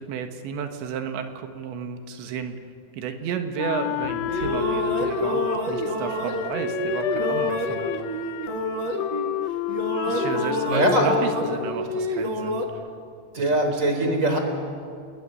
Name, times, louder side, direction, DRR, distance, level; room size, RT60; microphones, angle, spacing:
voice 1, 0.0-2.6 2.9-7.9 10.0-12.6 13.4-13.8, right 7 dB, 75° right, 7 dB, 3.7 m, -32 dB
Wind instrument woodwind instrument, 3.6-11.8, left 13 dB, 80° left, 2.1 m, -30 dB
sound 1, 4.0-9.4 9.7-12.7, equal, 50° right, 1.5 m, -28 dB
voice 2, 10.7-11.1 13.3-14.4, right 1 dB, 20° right, 4 dB, 3.8 m, -21 dB
29.5 x 20.5 x 9.8 m, 2.3 s
omnidirectional pair, 5.3 m